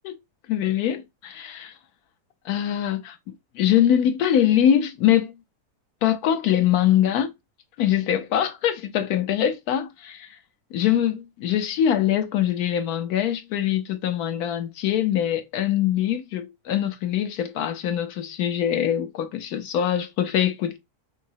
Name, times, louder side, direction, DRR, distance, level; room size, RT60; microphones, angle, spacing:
voice 1, 0.5-1.7 2.4-3.2 3.5-5.4 6.0-7.3 7.8-10.3 10.7-20.8, left 10 dB, 75° left, 1.1 m, -23 dB
5.4 x 2.0 x 2.7 m
omnidirectional pair, 1.7 m